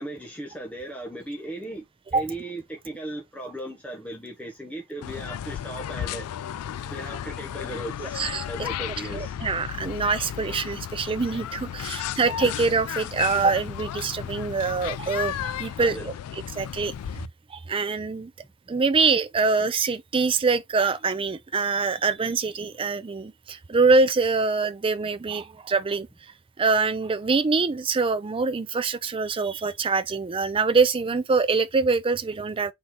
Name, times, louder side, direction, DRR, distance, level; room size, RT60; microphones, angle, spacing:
voice 1, 0.0-1.8 2.1-6.4 6.9-9.4 15.8-16.1, right 1 dB, 5° left, 0.8 m, -37 dB
sound 1, 5.0-17.3, left 10 dB, 80° left, 0.3 m, -34 dB
voice 2, 8.0-8.5 9.1-16.1 16.5-16.9 17.5-18.3 18.7-26.1 26.6-32.7, right 4 dB, 25° right, 0.4 m, -24 dB
4.2 x 2.9 x 3.7 m
head